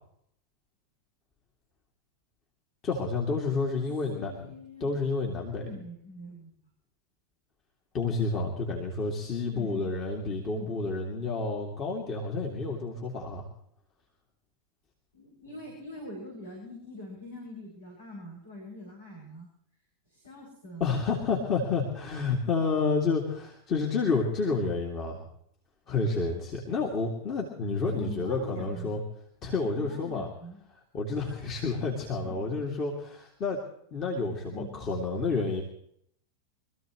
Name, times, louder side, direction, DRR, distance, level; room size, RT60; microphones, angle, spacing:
voice 1, 2.8-4.3 4.8-5.6 7.9-13.5 20.8-25.2 25.9-29.0 29.4-30.3 30.9-33.6 33.9-35.6, left 4 dB, 30° left, -1 dB, 2.7 m, -30 dB
voice 2, 4.1-4.9 5.5-6.5 9.5-9.9 10.5-10.7 15.1-19.5 20.1-21.0 27.8-29.0 29.8-30.6 32.2-32.5 34.5-34.9, left 1 dB, 75° left, -4 dB, 7.2 m, -44 dB
25.5 x 14.5 x 3.2 m, 0.69 s
figure-of-eight pair, 90°, 0 cm